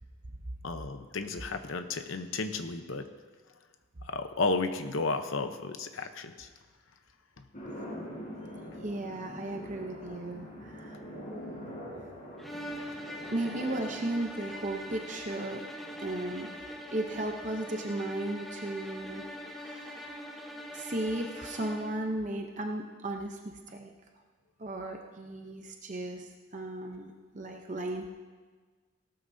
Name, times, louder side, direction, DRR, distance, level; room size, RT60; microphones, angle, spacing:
voice 1, 0.6-3.1 4.1-6.5, left 3 dB, 70° left, 7 dB, 0.9 m, -33 dB
sound 1, 7.5-17.9, equal, 40° left, 4.1 m, -45 dB
voice 2, 8.8-11.1 12.0-12.1 13.3-15.6 16.0-16.5 16.9-19.2 19.5-20.4 20.7-23.9 24.6-28.1, right 1 dB, 35° right, 2 dB, 0.7 m, -35 dB
sound 2, 12.4-22.1, equal, ahead, 1.0 m, -42 dB
18.0 x 12.5 x 2.7 m, 1.5 s
head